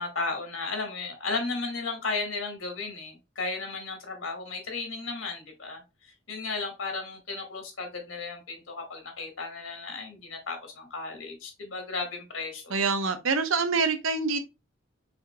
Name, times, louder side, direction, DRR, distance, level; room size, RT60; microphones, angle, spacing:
voice 1, 0.0-12.8, left 3 dB, 80° left, 1.6 m, -34 dB
voice 2, 12.7-14.4, right 4 dB, 85° right, 0.8 m, -26 dB
5.1 x 3.7 x 2.2 m
head